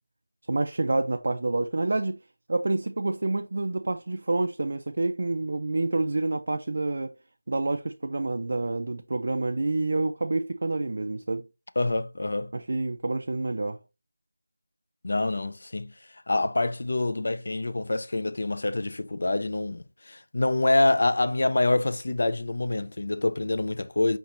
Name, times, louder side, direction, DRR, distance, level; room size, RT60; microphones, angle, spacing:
voice 1, 0.5-2.2 2.5-7.1 7.5-11.4 12.5-13.8, right 2 dB, 50° right, 0.3 m, -28 dB
voice 2, 11.8-12.5 15.0-15.9 16.3-24.2, left 2 dB, 55° left, 0.4 m, -26 dB
5.0 x 2.8 x 3.1 m
figure-of-eight pair, 170°, 0 cm